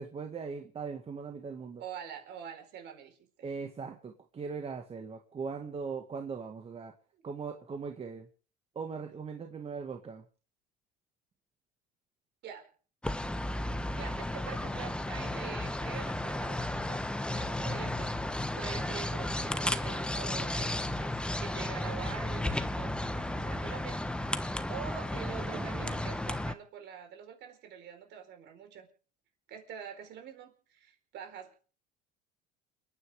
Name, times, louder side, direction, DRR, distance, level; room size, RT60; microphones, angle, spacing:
voice 1, 0.0-1.8 3.4-6.9 7.2-8.3 8.8-10.2 25.2-25.7, right 5 dB, 30° right, 4 dB, 1.9 m, -40 dB
voice 2, 1.8-3.5 12.4-12.7 13.9-28.9 29.5-31.6, right 8 dB, 60° right, 6 dB, 4.5 m, -45 dB
sound 1, 13.0-26.5, left 1 dB, 5° left, 1.1 m, -34 dB
29.5 x 10.0 x 3.6 m, 0.40 s
supercardioid pair, 105°, 20 cm